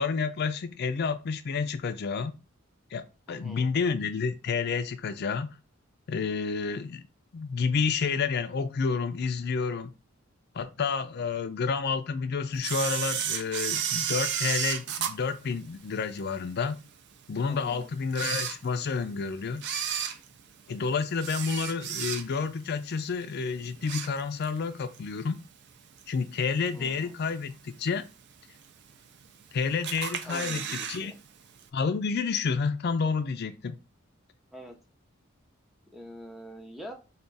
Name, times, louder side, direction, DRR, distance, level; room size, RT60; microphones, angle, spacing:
voice 1, 0.0-2.3 2.9-5.5 6.1-7.0 7.3-9.9 10.5-16.8 17.3-19.6 20.7-25.4 26.1-28.1 29.5-31.1 31.7-33.8, left 5 dB, 55° left, 0.4 m, -30 dB
voice 2, 3.3-3.7 17.5-17.9 26.7-27.1 30.2-31.2 34.5-34.8 35.9-36.9, equal, ahead, 0.5 m, -44 dB
Camera, 12.6-16.2 16.7-16.8 17.5-17.6 18.0-19.1 19.5-22.6 22.9-23.2 23.6-24.6 24.9-25.0 26.0-26.1 26.7-27.1 27.5-27.6 27.8-27.9 28.0-28.1 28.9-29.4 29.8-31.0 31.3-31.4 31.6-31.7, right 8 dB, 55° right, 0.4 m, -32 dB
3.4 x 2.4 x 3.9 m
head